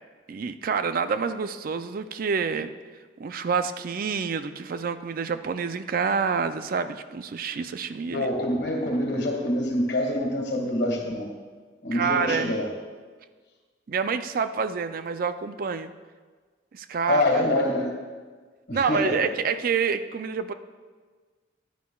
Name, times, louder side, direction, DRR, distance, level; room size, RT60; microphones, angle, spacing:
voice 1, 0.3-2.7 3.2-8.3 11.9-12.6 13.9-15.9 16.7-17.4 18.7-20.5, right 5 dB, 50° right, 10 dB, 0.4 m, -27 dB
voice 2, 8.1-11.3 11.8-12.7 17.1-17.9 18.7-19.3, left 1 dB, 65° left, 1 dB, 1.8 m, -25 dB
14.0 x 10.5 x 2.3 m, 1.5 s
head